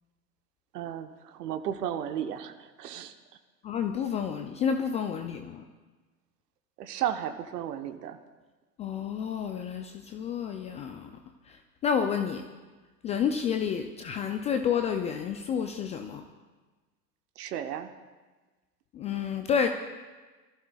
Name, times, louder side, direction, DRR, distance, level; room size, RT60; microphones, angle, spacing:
voice 1, 0.7-3.1 6.8-8.2 17.4-17.9, right 10 dB, 70° right, 8 dB, 1.1 m, -34 dB
voice 2, 3.6-5.6 8.8-11.1 11.5-12.4 13.0-16.2 18.9-19.7, left 7 dB, 15° left, 6 dB, 0.3 m, -30 dB
25.0 x 14.5 x 2.4 m, 1.3 s
hypercardioid pair, 95°, 49 cm